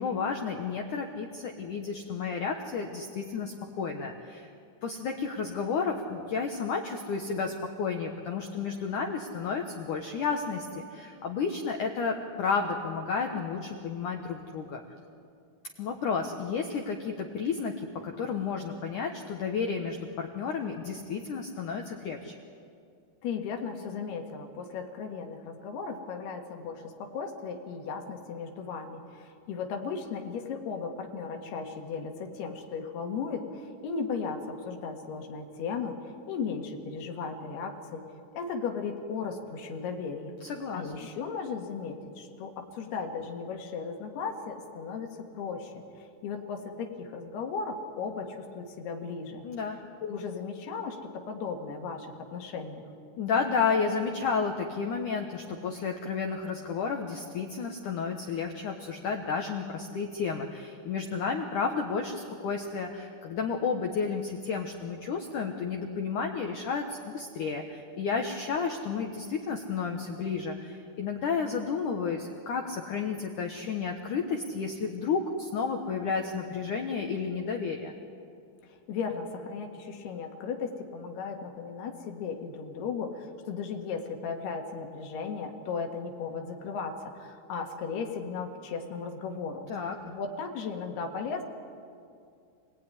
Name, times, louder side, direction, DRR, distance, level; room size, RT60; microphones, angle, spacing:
voice 1, 0.0-4.5 4.8-14.8 15.8-22.3 40.4-40.9 49.4-49.8 53.2-77.9 89.7-90.0, left 5 dB, 80° left, 3 dB, 1.8 m, -32 dB
voice 2, 23.2-38.1 38.3-49.4 50.0-52.8 78.6-89.7 90.0-91.4, left 5 dB, 65° left, 3 dB, 3.4 m, -36 dB
27.5 x 18.5 x 9.8 m, 2.5 s
omnidirectional pair, 5.7 m